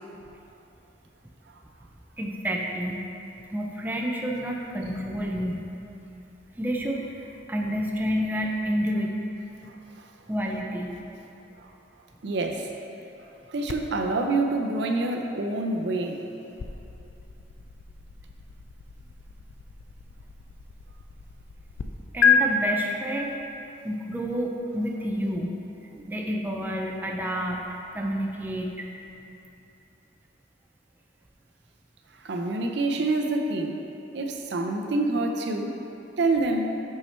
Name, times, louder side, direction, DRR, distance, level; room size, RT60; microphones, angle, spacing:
voice 1, 2.2-3.0 3.5-5.7 6.6-9.1 10.3-11.0 22.1-23.3 23.8-25.5 25.9-27.7 27.9-28.9, equal, 10° right, -1 dB, 0.4 m, -29 dB
voice 2, 9.6-10.1 11.6-11.7 12.2-12.7 13.5-16.2 32.2-33.8 34.1-35.8 36.2-36.8, right 2 dB, 65° right, 3 dB, 0.5 m, -27 dB
sound 1, 13.7-21.8 22.2-22.4, left 8 dB, 85° left, 0.4 m, -31 dB
5.9 x 5.7 x 4.3 m, 2.9 s
head